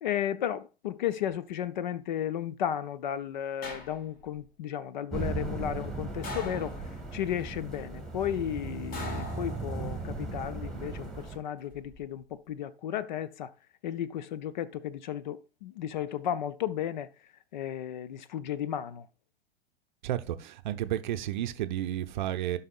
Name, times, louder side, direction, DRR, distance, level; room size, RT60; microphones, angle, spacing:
voice 1, 0.0-6.8 7.1-13.5 13.8-17.1 17.5-19.1, left 10 dB, 45° left, 0.5 m, -34 dB
sound 1, 3.6-4.4 6.2-7.2 8.9-10.1 11.5-12.0, left 2 dB, 25° left, 1.4 m, -42 dB
sound 2, 5.1-11.4, right 3 dB, ahead, 1.5 m, -37 dB
voice 2, 20.0-22.6, right 12 dB, 45° right, 0.6 m, -32 dB
16.0 x 5.5 x 2.4 m
figure-of-eight pair, 100°, 32 cm